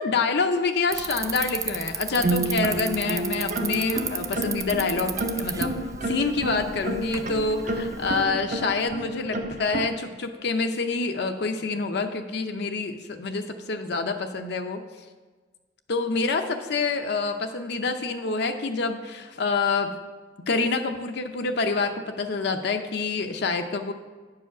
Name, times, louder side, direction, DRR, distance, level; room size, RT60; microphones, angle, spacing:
voice 1, 0.0-5.7 6.0-14.8 15.9-20.0 20.5-23.9, left 4 dB, 65° left, 6 dB, 0.6 m, -27 dB
Bicycle, 0.9-8.2, right 6 dB, 20° right, 0.4 m, -34 dB
sound 1, 2.1-9.9, right 2 dB, 45° right, 0.7 m, -30 dB
9.0 x 4.8 x 6.0 m, 1.4 s
head